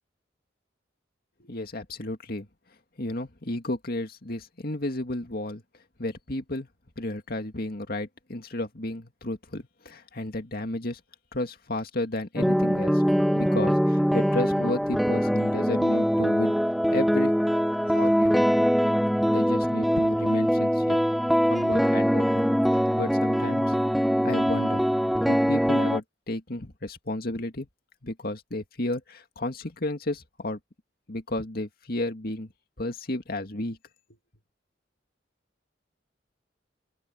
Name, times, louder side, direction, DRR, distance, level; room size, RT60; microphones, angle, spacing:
voice 1, 1.4-2.5 3.0-5.6 6.0-6.7 7.0-11.0 11.3-13.0 13.3-16.5 16.9-17.3 17.9-18.5 19.3-21.0 21.4-23.6 24.2-24.8 25.2-27.7 28.0-30.6 31.1-32.5 32.8-33.8, left 1 dB, 55° left, 2.2 m, -32 dB
sound 1, 12.4-26.0, equal, ahead, 0.5 m, -23 dB
open air
head